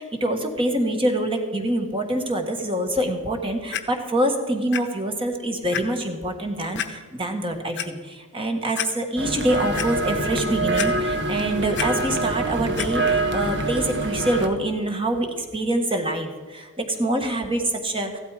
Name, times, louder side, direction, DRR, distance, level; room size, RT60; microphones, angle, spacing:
voice 1, 0.0-18.2, right 1 dB, 25° right, 5 dB, 1.5 m, -25 dB
Clock, 3.7-3.8 4.7-4.8 5.3-5.4 5.7-5.8 6.8-6.9 7.5-7.9 8.4-8.5 8.8-8.9 9.3-9.9 10.8-11.3 11.5-11.9 12.8-12.9 13.6-13.7, left 10 dB, 50° left, 0.9 m, -29 dB
sound 1, 9.2-14.5, right 2 dB, 50° right, 1.2 m, -25 dB
15.5 x 12.5 x 4.9 m, 1.5 s
head